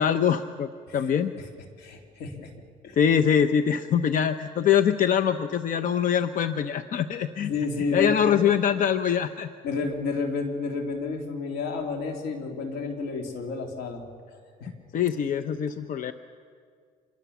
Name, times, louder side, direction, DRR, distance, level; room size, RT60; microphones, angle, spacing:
voice 1, 0.0-1.3 3.0-7.5 7.9-9.5 14.9-16.1, left 8 dB, 50° left, 10 dB, 0.8 m, -23 dB
voice 2, 1.8-2.5 2.8-3.0 7.5-8.4 9.6-14.0 14.3-14.7, left 4 dB, 80° left, 3 dB, 3.5 m, -31 dB
26.5 x 22.0 x 7.2 m, 2.1 s
cardioid pair, 110°, 17 cm